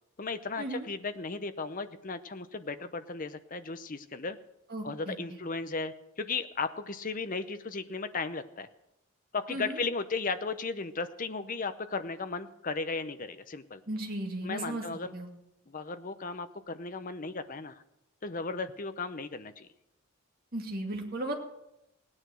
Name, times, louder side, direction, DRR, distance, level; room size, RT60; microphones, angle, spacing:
voice 1, 0.2-4.4 4.8-8.7 9.3-13.8 14.4-15.1 15.7-17.8 18.2-19.7, left 4 dB, 35° left, 10 dB, 0.8 m, -35 dB
voice 2, 4.7-5.4 9.5-9.8 13.9-14.8 15.1-15.3 20.5-21.4, right 1 dB, 40° right, 0 dB, 2.4 m, -36 dB
17.5 x 9.8 x 6.3 m, 0.88 s
head